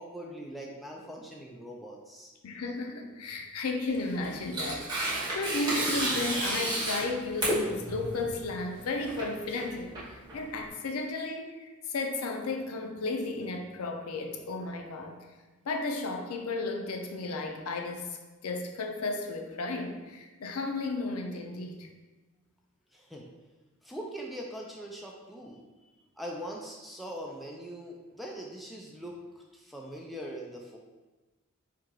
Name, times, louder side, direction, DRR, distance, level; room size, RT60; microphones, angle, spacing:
voice 1, 0.0-2.3 22.9-23.3 23.8-30.8, equal, ahead, -1 dB, 0.4 m, -42 dB
voice 2, 2.4-15.2 15.7-18.2 18.4-21.9, left 3 dB, 80° left, 3 dB, 0.5 m, -34 dB
Tearing, 3.9-10.7, right 1 dB, 20° right, 1.1 m, -32 dB
3.6 x 2.8 x 4.6 m, 1.2 s
head